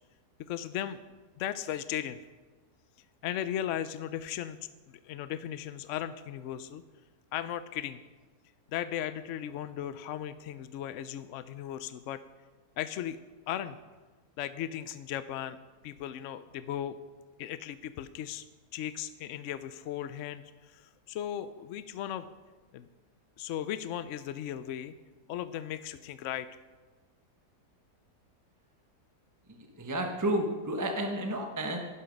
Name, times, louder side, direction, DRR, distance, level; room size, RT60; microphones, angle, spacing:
voice 1, 0.5-2.2 3.2-4.6 4.9-6.8 7.3-8.0 8.7-12.2 12.8-13.2 13.5-13.8 14.4-15.6 15.8-17.0 17.4-18.5 18.7-22.3 22.7-22.9 23.4-24.9 25.3-26.5, left 11 dB, 70° left, 13 dB, 0.7 m, -36 dB
voice 2, 29.5-31.8, right 1 dB, 15° right, 3 dB, 0.9 m, -31 dB
11.0 x 11.0 x 5.2 m, 1.3 s
omnidirectional pair, 1.7 m